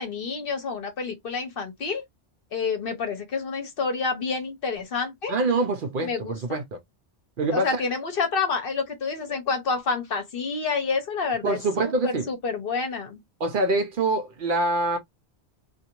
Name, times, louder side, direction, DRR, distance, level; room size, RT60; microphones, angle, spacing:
voice 1, 0.0-2.0 2.5-5.3 6.0-6.6 7.5-13.2, left 4 dB, 60° left, 0.9 m, -28 dB
voice 2, 5.3-6.6 7.4-7.8 11.4-12.3 13.4-15.0, right 2 dB, 55° right, 0.7 m, -25 dB
2.5 x 2.5 x 2.9 m
omnidirectional pair, 1.1 m